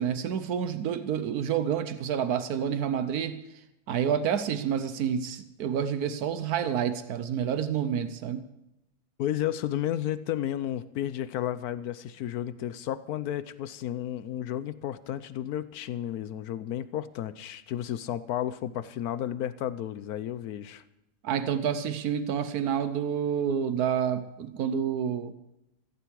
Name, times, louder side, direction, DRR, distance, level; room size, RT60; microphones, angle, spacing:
voice 1, 0.0-3.4 3.9-8.5 21.2-25.3, right 8 dB, 85° right, 11 dB, 1.3 m, -28 dB
voice 2, 9.2-20.8, left 11 dB, 80° left, 14 dB, 1.2 m, -32 dB
16.0 x 15.0 x 4.7 m, 0.90 s
omnidirectional pair, 1.6 m